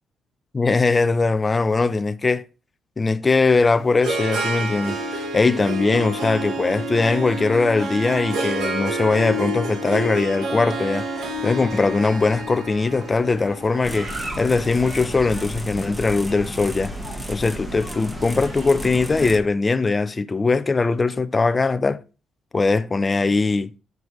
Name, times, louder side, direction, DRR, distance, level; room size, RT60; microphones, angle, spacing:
voice 1, 0.5-2.4 3.0-11.1 11.4-14.1 14.4-16.9 17.3-22.0 22.5-23.7, left 3 dB, 25° left, 0.5 m, -20 dB
Harp, 3.4-15.5, right 1 dB, 70° right, 1.4 m, -29 dB
sound 1, 11.2-19.4, right 2 dB, 45° right, 3.4 m, -40 dB
sound 2, 13.8-19.4, right 1 dB, 5° right, 1.1 m, -33 dB
9.5 x 5.3 x 3.1 m
cardioid pair, 90°, 0 cm